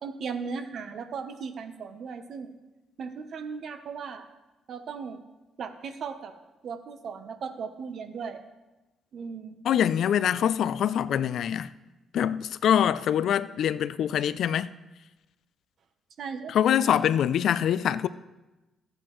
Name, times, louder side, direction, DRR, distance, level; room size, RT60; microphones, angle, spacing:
voice 1, 0.0-2.5 3.0-4.2 4.7-5.2 5.6-6.3 6.6-8.4 9.1-9.6 16.2-16.5, right 5 dB, 60° right, 0.9 m, -37 dB
voice 2, 9.6-11.7 12.1-14.7 16.5-18.1, left 9 dB, 70° left, 0.3 m, -24 dB
13.0 x 8.9 x 3.1 m
cardioid pair, 90°, 0 cm